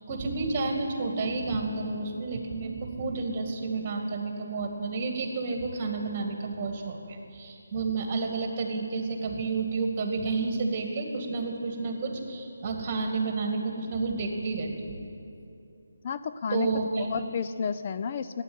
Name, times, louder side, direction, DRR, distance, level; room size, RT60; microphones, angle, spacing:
voice 1, 0.1-15.0 16.5-17.2, right 3 dB, 30° right, 3 dB, 2.0 m, -30 dB
voice 2, 16.0-16.7 17.0-18.4, left 6 dB, 35° left, 11 dB, 0.4 m, -31 dB
13.5 x 9.6 x 8.8 m, 2.7 s
figure-of-eight pair, 155°, 0 cm